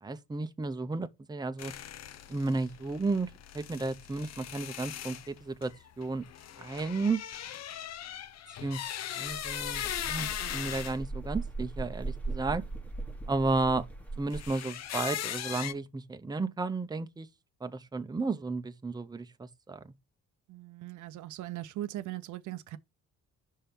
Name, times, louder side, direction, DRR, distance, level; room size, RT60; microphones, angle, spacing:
voice 1, 0.0-1.7 2.3-5.7 6.0-6.2 6.6-7.2 8.6-12.6 13.3-13.9 14.2-17.3 17.6-19.9, right 3 dB, 15° right, 0.7 m, -33 dB
sound 1, 1.6-11.0 14.3-15.7, left 10 dB, 60° left, 0.6 m, -39 dB
sound 2, 9.2-14.5, right 3 dB, 5° left, 1.2 m, -39 dB
voice 2, 20.5-22.8, right 14 dB, 75° right, 0.6 m, -39 dB
5.5 x 3.4 x 5.7 m
cardioid pair, 90°, 30 cm